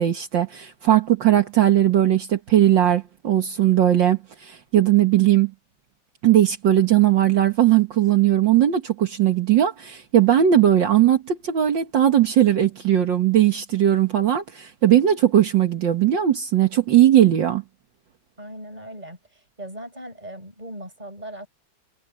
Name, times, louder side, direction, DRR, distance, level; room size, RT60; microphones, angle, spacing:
voice 1, 0.0-5.5 6.2-17.6, right 11 dB, 65° right, 2.1 m, -18 dB
voice 2, 18.4-21.5, right 1 dB, 20° right, 6.6 m, -38 dB
omnidirectional pair, 2.2 m